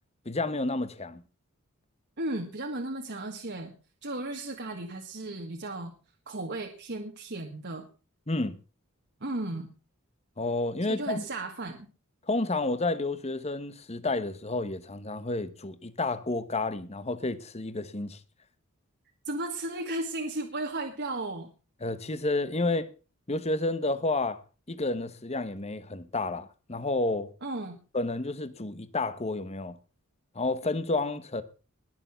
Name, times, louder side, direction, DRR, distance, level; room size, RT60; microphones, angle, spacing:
voice 1, 0.2-1.2 8.3-8.6 10.4-11.2 12.3-18.2 21.8-22.9 23.3-24.4 24.7-27.3 27.9-29.8 30.3-31.4, left 2 dB, 30° left, 1.1 m, -30 dB
voice 2, 2.2-3.7 4.0-5.9 6.3-7.9 9.2-9.7 10.8-11.9 19.2-21.5 27.4-27.8, right 2 dB, 50° right, 1.6 m, -35 dB
20.5 x 6.9 x 5.7 m
head